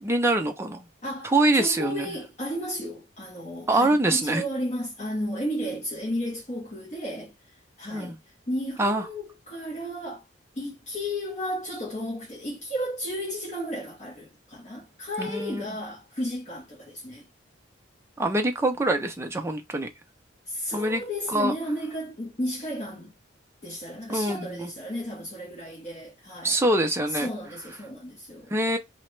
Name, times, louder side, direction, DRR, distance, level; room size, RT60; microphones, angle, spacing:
voice 1, 0.0-0.8 1.2-2.1 3.7-4.4 7.9-8.2 8.8-9.0 15.2-15.6 18.2-19.9 20.7-21.0 21.3-21.5 24.1-24.7 26.4-27.3 28.5-28.8, right 2 dB, 15° right, 0.4 m, -24 dB
voice 2, 1.0-7.3 7.8-8.2 8.5-10.2 10.5-17.2 20.5-23.1 23.6-26.6 27.1-28.5, equal, 35° left, 0.8 m, -33 dB
2.9 x 2.1 x 3.1 m
head